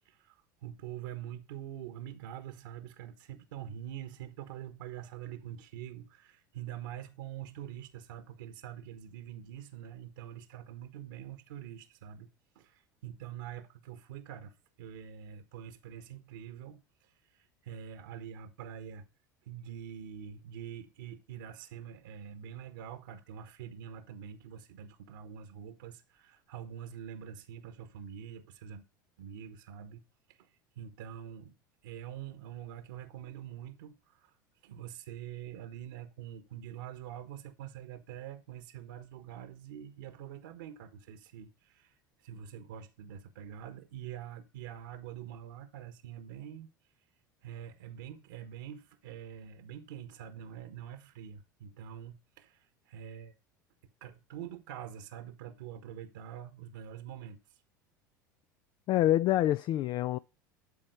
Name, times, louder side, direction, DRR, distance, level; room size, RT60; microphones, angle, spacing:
voice 1, 0.0-12.3 12.5-16.8 17.3-19.1 19.5-28.8 29.2-30.0 30.3-30.5 30.8-31.6 31.8-34.3 34.6-46.7 47.4-53.3 54.0-57.4, right 9 dB, 70° right, 1.3 m, -45 dB
voice 2, 58.9-60.2, left 14 dB, 45° left, 0.4 m, -26 dB
12.0 x 4.3 x 7.9 m
figure-of-eight pair, 75°, 11 cm